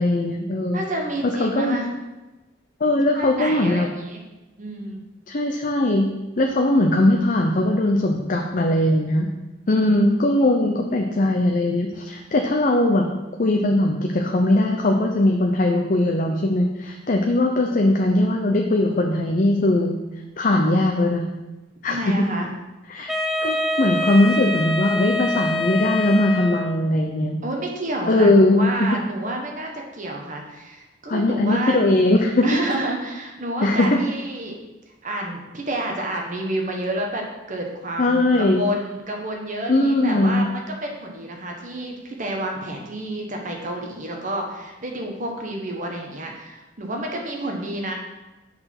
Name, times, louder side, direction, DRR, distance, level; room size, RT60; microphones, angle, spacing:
voice 1, 0.0-0.8 1.2-1.8 2.8-3.9 5.3-9.3 9.7-13.1 13.4-20.0 20.4-21.2 21.8-22.3 22.9-23.1 23.4-27.4 28.1-29.0 31.1-32.4 33.6-34.0 38.0-38.6 39.7-40.5, left 1 dB, 45° left, 2 dB, 0.6 m, -20 dB
voice 2, 0.7-1.9 3.1-4.2 4.6-5.1 9.7-10.1 17.6-17.8 21.9-22.5 27.4-31.8 32.4-34.6 35.0-47.9, right 1 dB, 45° right, 1 dB, 1.2 m, -29 dB
Wind instrument woodwind instrument, 23.1-26.9, left 1 dB, ahead, 0.5 m, -25 dB
7.8 x 4.3 x 5.9 m, 1.1 s
head